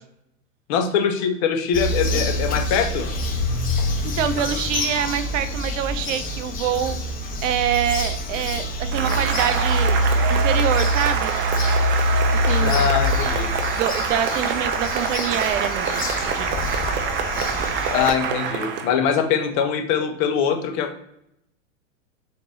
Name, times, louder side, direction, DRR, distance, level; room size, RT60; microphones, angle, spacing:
voice 1, 0.7-3.1 12.6-13.5 17.9-20.9, left 7 dB, 45° left, 6 dB, 1.0 m, -22 dB
Bird vocalization bird call bird song, 1.7-18.1, left 1 dB, 20° left, 1.2 m, -25 dB
voice 2, 4.2-7.0 7.4-10.0 10.3-11.3 12.3-12.9 13.7-16.7, right 9 dB, 70° right, 11 dB, 0.7 m, -25 dB
Cheering / Applause, 8.9-19.0, right 6 dB, 30° right, 0.5 m, -26 dB
4.0 x 2.7 x 3.6 m, 0.76 s
hypercardioid pair, 110°, 39 cm